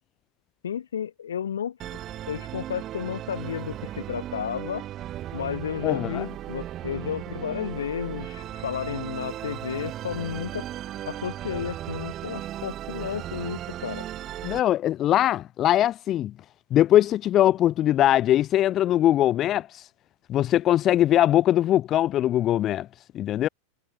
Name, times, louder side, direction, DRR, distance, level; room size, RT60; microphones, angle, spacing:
voice 1, 0.6-1.8 2.3-4.9 5.3-10.7 11.0-14.1, left 8 dB, 75° left, 2.2 m, -32 dB
Musical instrument, 1.8-14.6, right 12 dB, 35° right, 3.7 m, -36 dB
voice 2, 5.8-6.2 14.4-16.3 16.7-19.9 20.3-22.9 23.1-23.5, left 12 dB, 35° left, 0.7 m, -21 dB
figure-of-eight pair, 90°, 0 cm